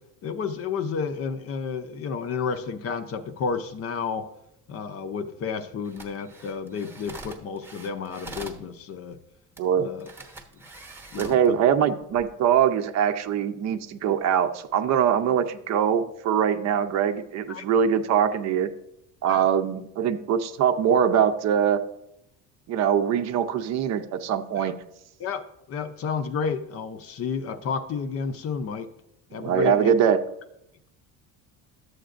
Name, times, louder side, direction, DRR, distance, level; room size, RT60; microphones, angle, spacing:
voice 1, 0.2-4.3 4.7-9.2 9.8-10.1 11.1-11.6 17.5-17.7 19.3-19.5 24.6-24.7 25.2-28.9 29.3-29.9, left 6 dB, 40° left, 10 dB, 0.6 m, -31 dB
sound 1, 5.8-8.6 9.6-9.7 10.0-11.5 12.0-12.2, right 3 dB, 5° right, 0.9 m, -43 dB
voice 2, 9.6-9.9 11.2-18.7 19.2-21.8 22.7-24.7 29.3-30.2, right 8 dB, 50° right, 9 dB, 0.6 m, -23 dB
12.0 x 7.9 x 2.5 m, 0.80 s
cardioid pair, 155°, 36 cm